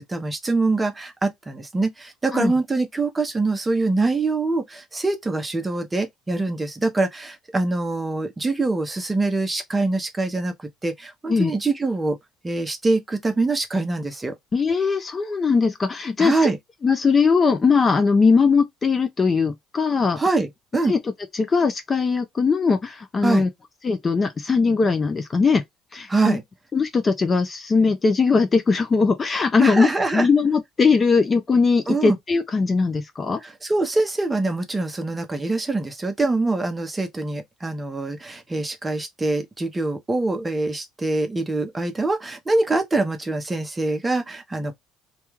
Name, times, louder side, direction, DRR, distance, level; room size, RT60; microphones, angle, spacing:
voice 1, 0.0-10.5 10.8-12.2 12.4-14.4 16.2-16.6 20.2-20.9 23.2-23.4 26.1-26.4 29.6-30.3 31.9-32.2 33.4-44.7, right 3 dB, 15° right, 0.7 m, -24 dB
voice 2, 14.5-16.5 16.8-20.2 20.9-21.0 21.4-23.5 23.8-25.6 25.9-26.4 26.7-29.9 30.1-33.4, left 4 dB, 25° left, 0.5 m, -20 dB
2.3 x 2.3 x 3.0 m
cardioid pair, 115°, 0 cm